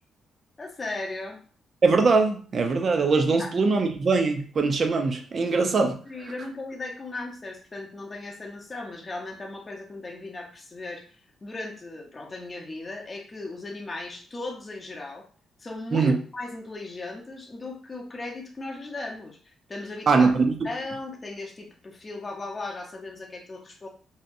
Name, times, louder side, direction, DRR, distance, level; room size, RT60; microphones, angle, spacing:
voice 1, 0.6-1.4 3.4-3.5 6.1-11.0 11.4-15.2 15.6-20.3 20.6-23.9, left 2 dB, 30° left, 0 dB, 0.6 m, -37 dB
voice 2, 1.8-6.0 15.9-16.2 20.1-20.6, right 4 dB, 45° right, 5 dB, 0.5 m, -22 dB
2.7 x 2.1 x 2.6 m, 0.41 s
cardioid pair, 95°, 0 cm